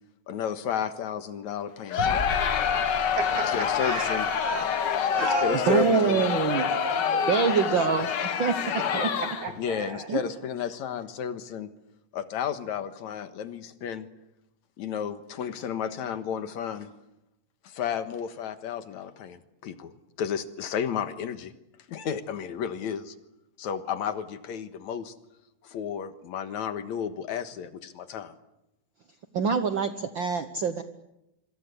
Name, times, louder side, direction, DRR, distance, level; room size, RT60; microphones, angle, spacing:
voice 1, 0.3-2.3 2.8-3.1 3.5-4.3 5.2-6.2 9.6-11.7 12.1-14.1 14.8-16.9 17.6-19.9 20.2-21.5 21.9-23.2 23.6-25.1 25.6-28.4, left 8 dB, 70° left, 10 dB, 2.7 m, -32 dB
Crowd, 1.9-9.6, left 7 dB, 55° left, 1.3 m, -27 dB
sound 1, 2.0-6.8, left 2 dB, 15° left, 5.4 m, -40 dB
voice 2, 3.1-4.7 5.1-7.9 8.8-10.1, right 4 dB, 75° right, 5 dB, 4.5 m, -33 dB
voice 3, 5.7-6.7 7.3-8.1 8.4-8.7 10.1-10.2 29.3-30.8, right 5 dB, 55° right, 9 dB, 1.5 m, -25 dB
26.0 x 25.5 x 8.3 m, 0.89 s
omnidirectional pair, 3.4 m